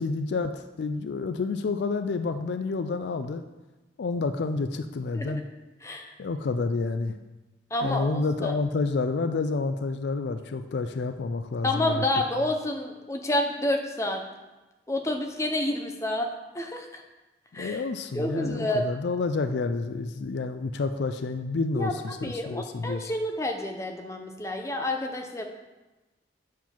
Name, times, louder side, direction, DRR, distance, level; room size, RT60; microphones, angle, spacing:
voice 1, 0.0-3.4 4.0-5.4 6.2-7.2 7.8-12.0 17.6-23.1, left 3 dB, 65° left, 9 dB, 0.4 m, -29 dB
voice 2, 5.8-6.1 7.7-8.5 11.6-14.2 14.9-16.3 16.5-17.0 17.5-17.8 18.1-18.8 21.7-21.9 22.2-25.5, left 1 dB, 15° left, 3 dB, 0.7 m, -29 dB
7.3 x 4.7 x 5.9 m, 1.1 s
head